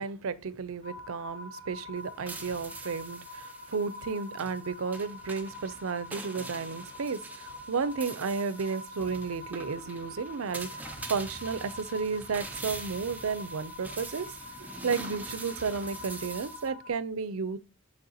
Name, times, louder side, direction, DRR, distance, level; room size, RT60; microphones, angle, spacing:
voice 1, 0.0-14.3 14.8-17.6, right 5 dB, 75° right, 0.5 m, -33 dB
female creppy vocal, 0.8-16.9, left 2 dB, 55° left, 3.0 m, -45 dB
sound 1, 2.0-16.7, right 3 dB, 10° right, 0.6 m, -44 dB
6.5 x 5.3 x 2.8 m
head